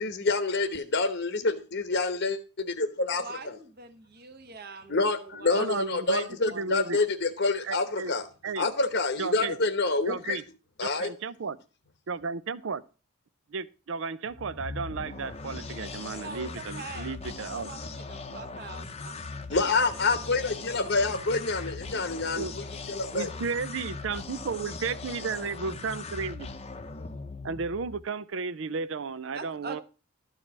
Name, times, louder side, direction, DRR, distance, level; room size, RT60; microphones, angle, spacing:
voice 1, 0.0-3.6 4.9-8.3 8.6-10.4 10.8-11.1 19.5-22.4 22.9-23.3, left 3 dB, 50° left, 1.0 m, -27 dB
voice 2, 3.2-7.1 16.2-19.1 29.3-29.8, right 3 dB, 45° right, 1.2 m, -44 dB
voice 3, 5.6-7.0 7.6-8.1 8.4-8.7 9.2-9.6 10.1-10.4 11.0-11.6 12.1-12.8 13.5-17.7 22.4-22.5 23.1-26.5 27.4-29.8, right 4 dB, 60° right, 0.5 m, -33 dB
sound 1, 14.3-28.0, left 3 dB, 30° left, 0.8 m, -40 dB
12.5 x 4.9 x 7.3 m
head